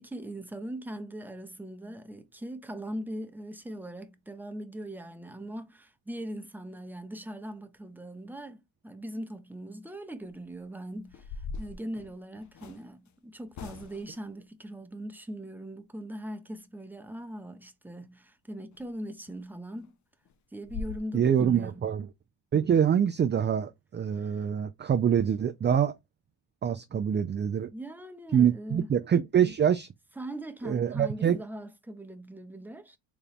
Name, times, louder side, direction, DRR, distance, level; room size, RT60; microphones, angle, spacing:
voice 1, 0.0-20.0 20.5-21.9 24.2-24.5 26.9-27.0 27.7-28.9 30.2-33.0, right 1 dB, 5° right, 0.7 m, -40 dB
sound 1, 10.2-10.5 11.0-12.8 13.5-14.2 18.7-18.8 19.3-19.4 19.8-19.9 20.3-20.4 20.6-21.0, left 4 dB, 35° left, 0.5 m, -41 dB
voice 2, 21.1-22.1 22.5-25.9 26.6-27.7 28.3-29.9 30.7-31.4, right 8 dB, 25° right, 0.3 m, -25 dB
4.0 x 2.2 x 3.4 m
supercardioid pair, 65°, 50 cm